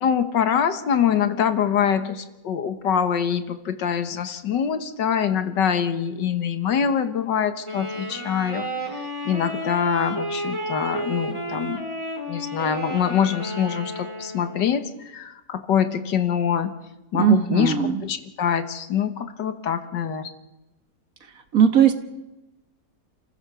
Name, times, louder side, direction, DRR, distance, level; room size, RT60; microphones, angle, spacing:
voice 1, 0.0-8.7 9.3-11.9 12.3-16.7 17.1-17.7 18.0-20.3, left 8 dB, 70° left, 10 dB, 1.9 m, -24 dB
Wind instrument woodwind instrument, 7.6-14.8, right 1 dB, 15° right, 2.3 m, -32 dB
voice 2, 17.1-18.0 21.5-21.9, right 8 dB, 50° right, 8 dB, 1.7 m, -18 dB
28.5 x 16.0 x 6.9 m, 1.0 s
omnidirectional pair, 2.0 m